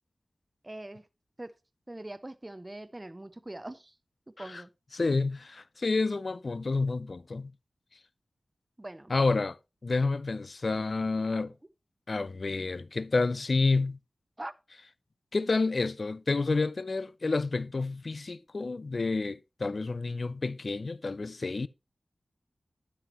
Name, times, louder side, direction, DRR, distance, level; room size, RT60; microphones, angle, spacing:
voice 1, 0.6-1.1 1.4-1.5 1.9-4.0 4.4-4.7 5.0-5.2 8.8-9.1 14.4-14.5, right 1 dB, 25° right, 0.5 m, -42 dB
voice 2, 4.9-7.5 9.1-9.6 9.8-11.5 12.1-14.0 15.3-21.7, left 3 dB, 55° left, 0.4 m, -29 dB
9.8 x 8.2 x 3.0 m
wide cardioid pair, 60°, 0 cm